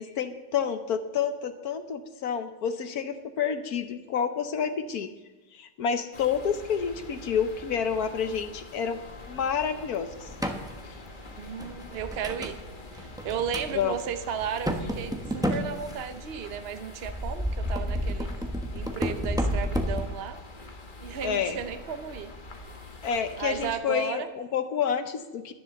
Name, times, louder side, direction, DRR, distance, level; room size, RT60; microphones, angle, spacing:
voice 1, 0.0-5.1 5.5-9.0 9.3-10.3 13.7-14.0 21.2-21.6 23.0-25.5, left 7 dB, 60° left, 9 dB, 1.0 m, -29 dB
sound 1, 6.1-23.8, left 2 dB, 30° left, 1.1 m, -45 dB
sound 2, 10.3-10.7 11.3-12.6 13.0-13.7 14.0-14.1 14.4-16.4 17.0-20.0, equal, 5° right, 0.5 m, -30 dB
voice 2, 11.4-12.6 12.9-18.3 18.7-20.4 21.0-22.3 23.4-24.3, right 7 dB, 75° right, 9 dB, 0.5 m, -34 dB
11.0 x 10.5 x 7.0 m, 1.2 s
omnidirectional pair, 2.2 m